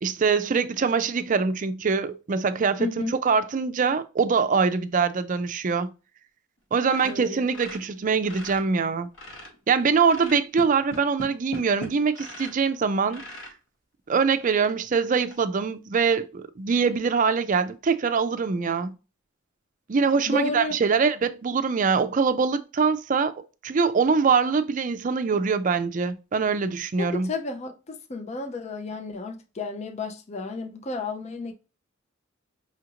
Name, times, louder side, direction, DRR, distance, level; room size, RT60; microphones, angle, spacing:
voice 1, 0.0-2.9 3.2-5.9 6.7-9.1 9.7-13.2 14.1-18.9 19.9-23.3 23.6-27.3, right 5 dB, 40° right, 0.4 m, -23 dB
voice 2, 2.8-3.1 7.0-7.4 20.3-20.8 27.0-31.5, left 2 dB, 35° left, 0.5 m, -32 dB
sound 1, 6.8-8.7 9.0-9.6 10.1-12.6 13.1-13.6 14.2-14.3 14.7-14.8 15.2-15.4, left 1 dB, 70° left, 1.5 m, -40 dB
5.6 x 2.5 x 2.9 m
head